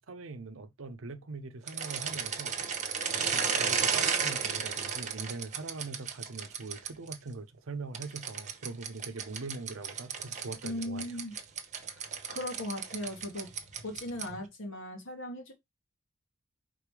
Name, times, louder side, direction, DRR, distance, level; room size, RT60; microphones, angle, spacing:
voice 1, 0.1-2.6 3.2-11.1, right 3 dB, 80° right, 0.7 m, -42 dB
sound 1, 1.6-7.1 7.9-14.4, right 6 dB, 35° right, 0.9 m, -34 dB
voice 2, 10.6-11.3 12.3-13.5 13.8-15.5, left 1 dB, 75° left, 1.6 m, -38 dB
5.1 x 3.8 x 4.9 m
head